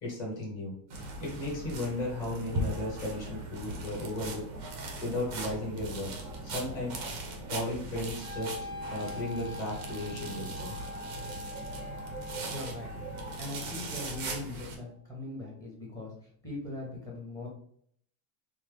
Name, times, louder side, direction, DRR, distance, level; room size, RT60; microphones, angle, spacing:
voice 1, 0.0-0.8 1.2-4.4 5.0-6.1 6.4-7.0 7.5-8.5 8.9-10.7, left 1 dB, 30° left, -4 dB, 1.1 m, -35 dB
sound 1, 0.9-14.7, right 2 dB, 35° right, 0.4 m, -39 dB
Wind instrument woodwind instrument, 8.2-14.3, left 2 dB, 55° left, 1.0 m, -44 dB
voice 2, 12.4-12.9 13.4-17.5, left 2 dB, 5° left, -3 dB, 0.6 m, -40 dB
4.2 x 2.1 x 3.2 m, 0.63 s
cardioid pair, 180°, 50 cm